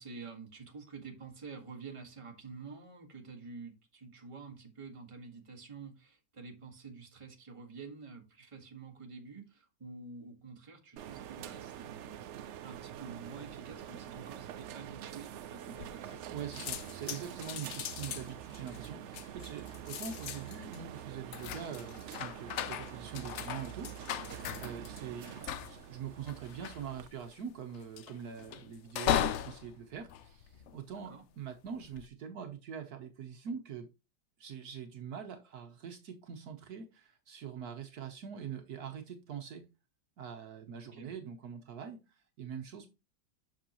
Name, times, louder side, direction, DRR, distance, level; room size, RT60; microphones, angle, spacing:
voice 1, 0.0-12.1 12.6-16.3 31.0-31.2 40.9-41.1, right 4 dB, 20° right, 1.3 m, -48 dB
sound 1, 11.0-27.1, right 10 dB, 85° right, 0.6 m, -46 dB
sound 2, 15.8-16.3 16.5-31.1 31.7-32.1, left 10 dB, 75° left, 0.6 m, -38 dB
voice 2, 16.3-33.9 34.4-39.7 40.2-42.9, right 7 dB, 65° right, 1.3 m, -44 dB
7.6 x 6.2 x 2.9 m
omnidirectional pair, 1.8 m